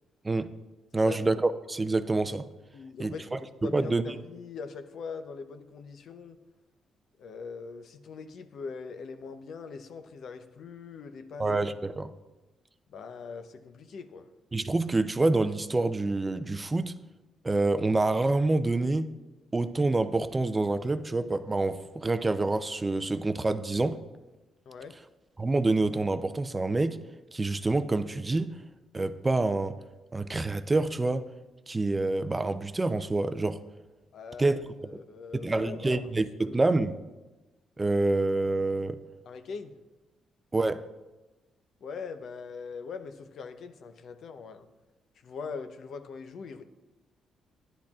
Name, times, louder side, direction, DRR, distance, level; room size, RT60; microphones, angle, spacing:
voice 1, 0.9-2.4 3.0-3.4 3.7-4.0 11.4-12.1 14.5-16.9 17.4-19.1 19.5-24.0 25.4-27.0 27.3-28.5 28.9-29.8 30.1-31.3 31.7-33.6 34.4-34.6 35.3-37.0 37.8-39.0 40.5-40.8, right 2 dB, 20° right, 11 dB, 0.5 m, -27 dB
voice 2, 2.7-6.4 7.2-11.5 12.9-14.3 24.7-25.0 34.1-34.6 34.9-36.1 36.5-36.6 39.2-39.8 41.8-44.7 45.2-46.6, left 5 dB, 65° left, 9 dB, 0.7 m, -41 dB
13.0 x 10.0 x 2.4 m, 1.1 s
cardioid pair, 90°, 0 cm